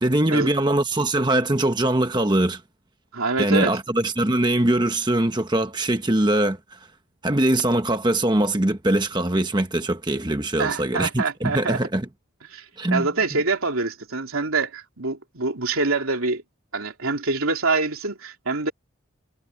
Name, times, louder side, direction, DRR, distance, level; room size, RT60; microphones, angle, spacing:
voice 1, 0.0-2.6 3.4-6.6 7.2-12.1 12.8-13.1, right 1 dB, 20° right, 1.2 m, -22 dB
voice 2, 3.1-3.8 10.6-11.8 12.5-12.6 12.9-16.4 16.7-18.7, right 3 dB, 90° right, 3.3 m, -25 dB
head